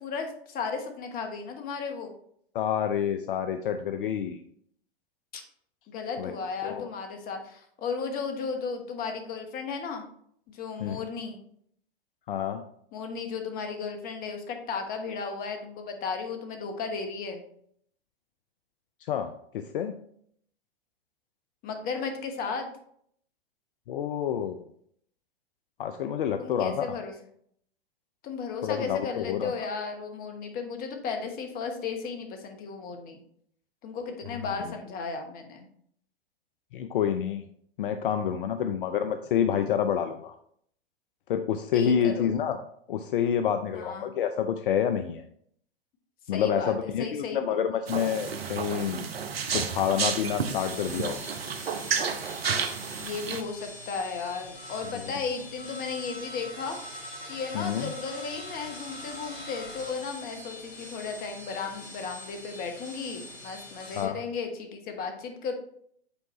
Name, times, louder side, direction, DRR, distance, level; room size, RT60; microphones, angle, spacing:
voice 1, 0.0-2.1 5.3-5.4 5.9-10.0 10.5-11.4 12.9-17.4 21.6-22.7 26.4-27.1 28.2-33.2 33.8-35.7 41.7-42.3 43.7-44.1 46.3-47.4 53.0-56.8 57.2-65.5, left 5 dB, 30° left, 5 dB, 1.2 m, -35 dB
voice 2, 2.5-4.4 6.2-6.3 6.6-6.9 10.8-11.0 12.3-12.6 19.0-19.9 23.9-24.6 25.8-27.0 28.6-29.5 36.7-37.4 37.8-40.3 41.3-42.6 42.9-45.2 46.3-49.1 49.5-51.2 57.5-57.9 64.0-64.2, left 8 dB, 60° left, 8 dB, 0.6 m, -28 dB
sound 1, 47.9-53.4, right 6 dB, 80° right, 0.8 m, -31 dB
sound 2, 50.3-64.0, left 1 dB, 85° left, 2.3 m, -43 dB
8.2 x 4.5 x 3.0 m, 0.66 s
hypercardioid pair, 105°, 30 cm